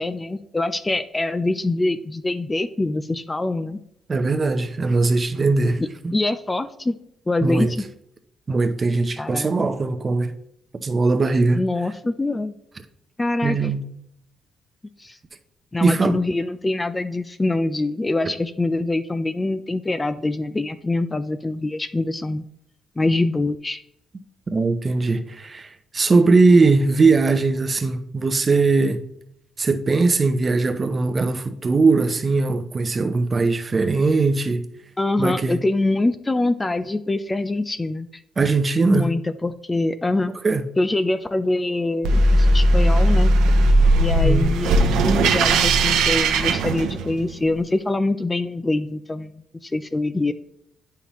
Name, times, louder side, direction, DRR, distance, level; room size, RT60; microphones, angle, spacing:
voice 1, 0.0-3.8 5.8-6.9 7.3-7.8 9.2-9.5 11.5-12.5 13.2-13.6 15.0-15.2 15.7-22.4 23.0-23.8 35.0-38.1 38.9-40.3 40.8-43.3 44.0-50.3, left 2 dB, 20° left, 0.4 m, -24 dB
voice 2, 4.1-6.1 7.4-7.7 8.5-10.3 10.8-11.6 13.4-13.8 15.8-16.2 24.5-29.0 29.6-34.7 35.2-35.6 38.4-39.1 40.4-40.6 44.2-44.5, right 3 dB, 30° right, 0.7 m, -20 dB
sound 1, 42.0-47.3, right 1 dB, 85° right, 0.6 m, -17 dB
8.4 x 5.7 x 3.0 m
cardioid pair, 90°, 0 cm